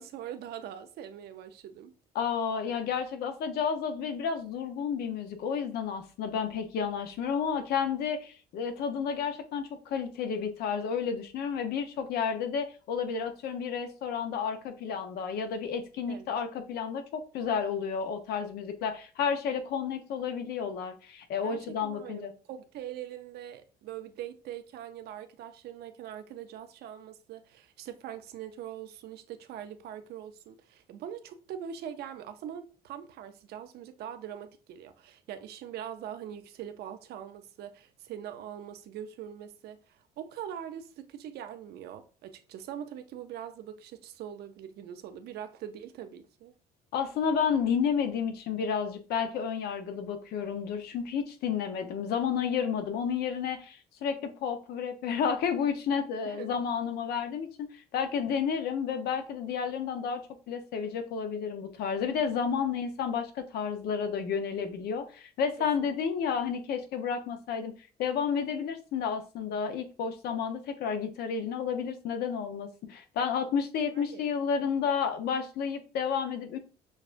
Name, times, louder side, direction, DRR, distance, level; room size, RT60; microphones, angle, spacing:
voice 1, 0.0-1.9 16.1-16.3 21.4-46.5 56.2-56.5 65.8-65.9 73.9-74.2 74.6-74.7, right 10 dB, 70° right, 0.6 m, -42 dB
voice 2, 2.1-22.3 46.9-67.7 68.0-76.6, left 7 dB, 70° left, 0.7 m, -31 dB
6.4 x 2.3 x 2.5 m
cardioid pair, 110°, 17 cm